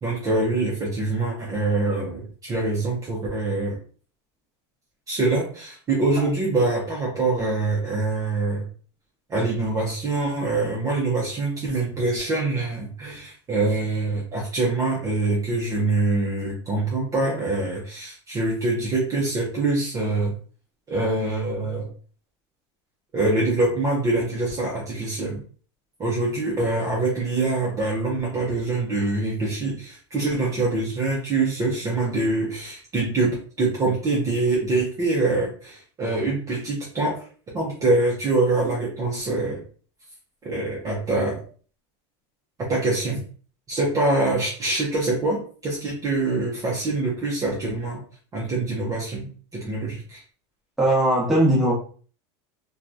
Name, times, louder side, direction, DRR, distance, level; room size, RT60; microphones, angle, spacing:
voice 1, 0.0-3.8 5.1-8.6 9.3-20.3 20.9-21.9 23.1-25.4 26.0-37.2 37.5-39.6 40.4-41.4 42.6-43.2 43.7-48.0 48.3-50.2, right 2 dB, 25° right, -4 dB, 0.7 m, -24 dB
voice 2, 50.8-51.7, right 1 dB, ahead, -6 dB, 1.1 m, -19 dB
2.8 x 2.3 x 2.5 m, 0.42 s
supercardioid pair, 145°, 15 cm